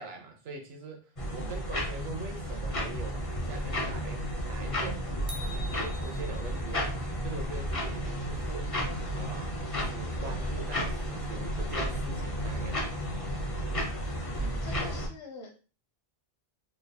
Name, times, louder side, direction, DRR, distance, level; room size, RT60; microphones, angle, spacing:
voice 1, 0.0-5.1 5.4-8.7 9.1-12.9, right 4 dB, 80° right, 3 dB, 0.9 m, -43 dB
sound 1, 1.2-15.1, equal, 35° left, 0.9 m, -32 dB
sound 2, 5.3-6.9, left 1 dB, 35° right, 0.5 m, -45 dB
voice 2, 14.4-15.6, left 1 dB, 70° left, 0 dB, 1.3 m, -45 dB
3.7 x 3.3 x 2.2 m, 0.35 s
omnidirectional pair, 1.1 m